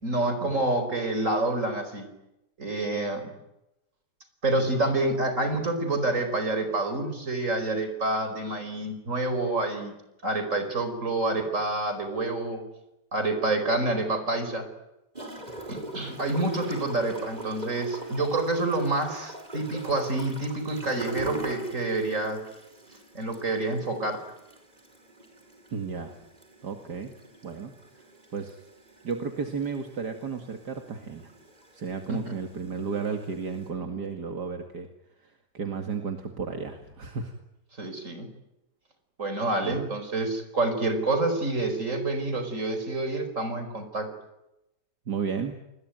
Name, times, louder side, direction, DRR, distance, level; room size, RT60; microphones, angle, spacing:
voice 1, 0.0-2.1 2.6-3.3 4.4-9.9 10.2-12.6 13.1-14.7 15.7-22.4 23.1-24.2 32.1-32.4 37.8-38.3 39.2-44.1, right 2 dB, 45° right, 8 dB, 5.2 m, -28 dB
Gurgling / Toilet flush, 15.1-33.7, right 1 dB, 25° right, 5.5 m, -43 dB
voice 2, 25.7-26.1 26.6-27.1 27.4-27.7 28.3-28.6 29.0-31.3 31.7-34.9 35.2-37.3 39.6-39.8 45.1-45.6, right 5 dB, 70° right, 4 dB, 2.7 m, -33 dB
29.0 x 21.0 x 9.4 m, 0.92 s
omnidirectional pair, 1.8 m